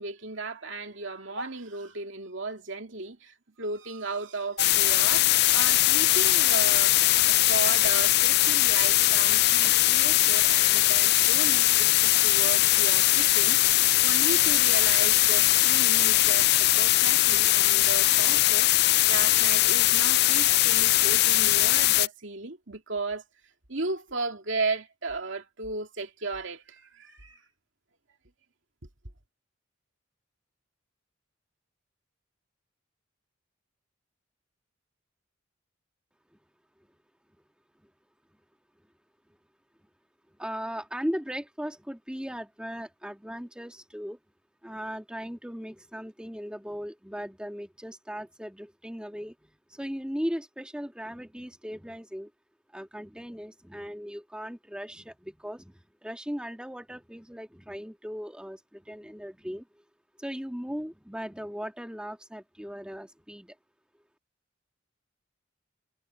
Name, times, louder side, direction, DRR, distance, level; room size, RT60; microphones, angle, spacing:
voice 1, 0.0-7.0 7.3-16.5 16.8-23.2 23.7-27.4, right 3 dB, 65° right, 2.6 m, -35 dB
sound 1, 4.6-22.1, left 17 dB, 55° left, 0.4 m, -21 dB
voice 2, 40.4-44.2 44.6-52.3 52.7-59.8 60.2-63.6, equal, 5° right, 2.1 m, -38 dB
head